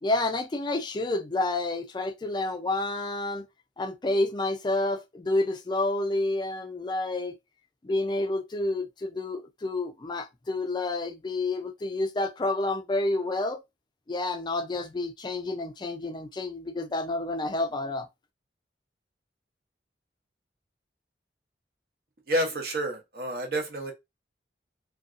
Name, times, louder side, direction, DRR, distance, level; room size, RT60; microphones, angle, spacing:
voice 1, 0.0-3.5 3.8-7.4 7.8-13.6 14.1-18.1, left 2 dB, 25° left, 0.4 m, -29 dB
voice 2, 22.3-23.9, right 1 dB, 55° right, 0.8 m, -29 dB
2.5 x 2.3 x 2.4 m
head